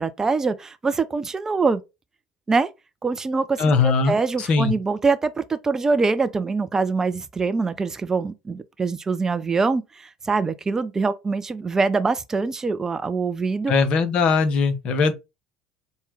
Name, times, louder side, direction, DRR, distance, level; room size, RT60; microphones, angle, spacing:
voice 1, 0.0-1.8 2.5-2.7 3.0-13.7, right 4 dB, 20° right, 0.4 m, -24 dB
voice 2, 3.6-4.7 13.7-15.1, left 4 dB, 45° left, 0.7 m, -20 dB
4.3 x 2.1 x 3.4 m
figure-of-eight pair, 65°, 3 cm